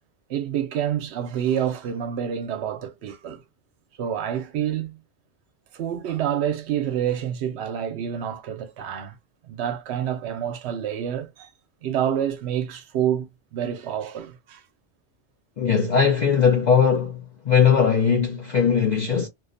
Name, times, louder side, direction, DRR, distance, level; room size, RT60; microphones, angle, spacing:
voice 1, 0.3-3.4 4.0-5.0 5.7-9.2 9.4-11.5 11.8-14.6, right 9 dB, 70° right, 0.8 m, -28 dB
voice 2, 15.6-19.3, left 6 dB, 55° left, 0.5 m, -19 dB
2.5 x 2.1 x 2.4 m
omnidirectional pair, 1.2 m